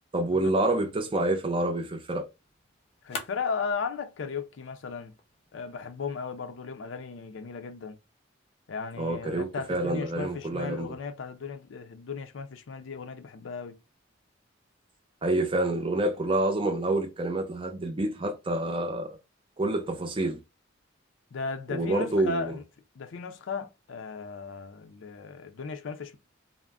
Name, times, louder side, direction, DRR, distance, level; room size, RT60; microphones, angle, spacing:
voice 1, 0.1-2.3 9.0-10.9 15.2-19.2 19.6-20.4 21.7-22.6, right 2 dB, 25° right, 0.5 m, -28 dB
sound 1, 0.7-6.7, left 4 dB, 30° left, 0.6 m, -48 dB
voice 2, 3.0-5.1 5.5-8.0 8.7-13.8 21.3-22.6 23.0-26.2, left 5 dB, 80° left, 0.5 m, -36 dB
2.4 x 2.0 x 3.4 m
head